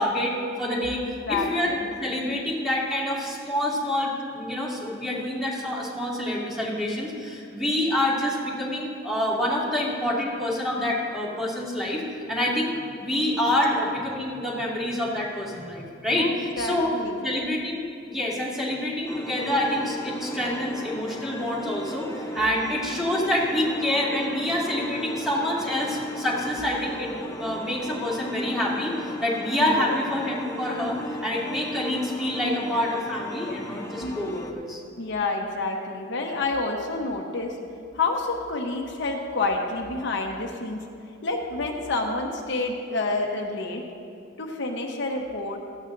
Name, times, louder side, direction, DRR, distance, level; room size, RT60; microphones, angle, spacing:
voice 1, 0.0-1.0 1.3-12.0 12.3-12.7 13.0-16.3 16.6-16.9 17.2-34.8, left 1 dB, ahead, -6 dB, 2.2 m, -27 dB
voice 2, 1.0-1.9 16.1-17.3 29.6-30.0 34.0-34.2 35.0-37.6 37.9-40.8 41.2-43.8 44.4-45.6, left 3 dB, 65° left, 1 dB, 1.0 m, -29 dB
sound 1, 19.1-34.5, left 1 dB, 15° left, 0.8 m, -36 dB
16.5 x 13.5 x 2.6 m, 2.4 s
head